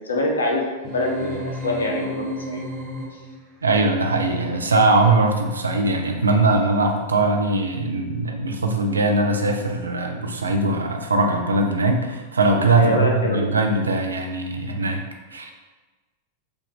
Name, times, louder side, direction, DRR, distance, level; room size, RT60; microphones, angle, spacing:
voice 1, 0.0-2.6 3.1-3.2 12.8-13.5, left 2 dB, 70° left, 1 dB, 0.7 m, -25 dB
sound 1, 0.8-3.5, equal, 25° right, 1.2 m, -32 dB
voice 2, 3.6-15.0 15.3-15.5, right 2 dB, 75° right, 3 dB, 0.5 m, -21 dB
4.9 x 2.5 x 3.5 m, 1.2 s
figure-of-eight pair, 90°, 0 cm